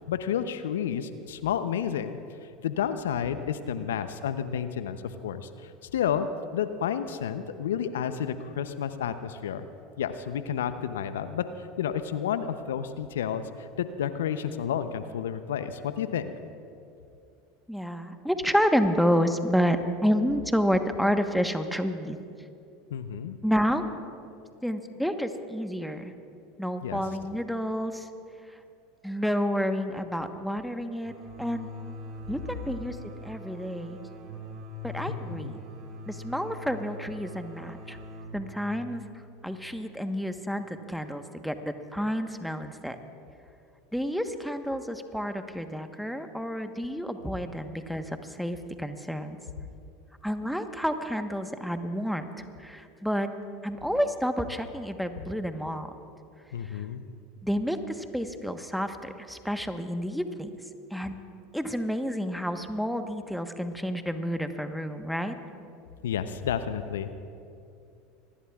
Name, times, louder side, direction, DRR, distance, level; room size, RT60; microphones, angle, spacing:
voice 1, 0.1-2.2 2.6-6.3 6.5-9.6 10.0-16.3 22.9-23.4 26.8-27.0 35.1-35.5 56.5-57.0 66.0-67.1, left 8 dB, 80° left, 11 dB, 0.6 m, -31 dB
voice 2, 17.7-22.2 23.4-23.8 24.6-26.1 26.6-28.1 28.5-28.6 29.0-31.1 31.4-31.7 32.3-33.0 33.2-34.0 34.8-35.6 36.1-38.0 38.3-39.0 39.4-43.0 43.9-49.4 50.2-53.3 53.6-55.9 56.6-56.8 57.4-60.5 60.9-61.2 61.5-65.3, equal, ahead, 7 dB, 1.2 m, -29 dB
sound 1, 31.0-40.5, equal, 45° right, 3.6 m, -43 dB
25.5 x 19.5 x 2.4 m, 2.6 s
hypercardioid pair, 80°, 0 cm